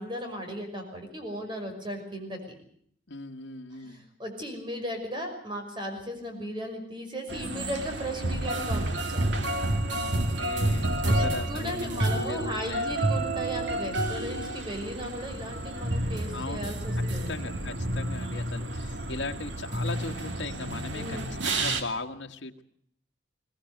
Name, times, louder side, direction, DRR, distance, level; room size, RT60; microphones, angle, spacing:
voice 1, 0.0-2.6 3.7-9.3 11.0-17.3 20.9-21.3, equal, 25° right, 5 dB, 5.7 m, -36 dB
voice 2, 3.1-4.0 9.9-10.1 10.4-13.0 16.3-16.7 17.2-21.2 21.4-22.6, left 3 dB, 80° left, 3 dB, 1.6 m, -38 dB
sound 1, 7.3-21.8, right 1 dB, 80° right, 2.5 m, -30 dB
22.5 x 18.5 x 8.0 m, 0.65 s
head